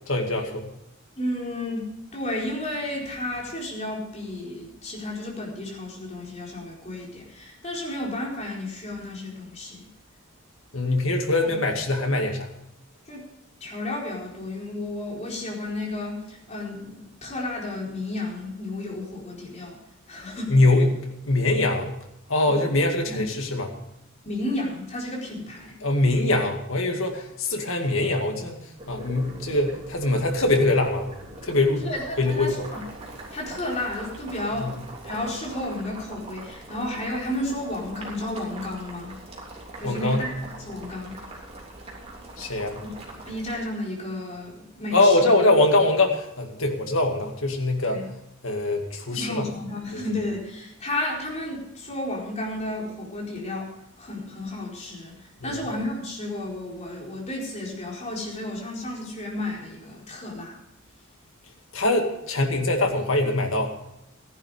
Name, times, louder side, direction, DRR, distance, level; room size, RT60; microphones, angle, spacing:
voice 1, 0.1-0.7 10.7-12.5 20.5-22.0 22.3-23.7 25.8-28.6 28.9-31.1 31.4-31.9 32.2-32.7 34.6-34.7 39.8-40.3 42.4-42.8 44.9-48.0 48.4-49.5 49.9-50.0 55.4-55.6 61.7-63.7, left 2 dB, 70° left, 3 dB, 2.2 m, -23 dB
voice 2, 1.2-1.8 2.1-9.9 11.4-11.5 13.1-13.2 13.6-19.8 20.1-20.6 22.5-22.6 23.1-23.2 24.2-25.8 31.8-32.8 33.3-39.1 39.8-41.2 42.8-45.3 47.9-48.1 49.1-53.7 54.0-60.6, left 1 dB, 35° left, -2 dB, 4.4 m, -32 dB
Boiling, 28.8-43.6, right 2 dB, 30° right, 3.4 m, -42 dB
15.0 x 11.0 x 5.0 m, 0.85 s
head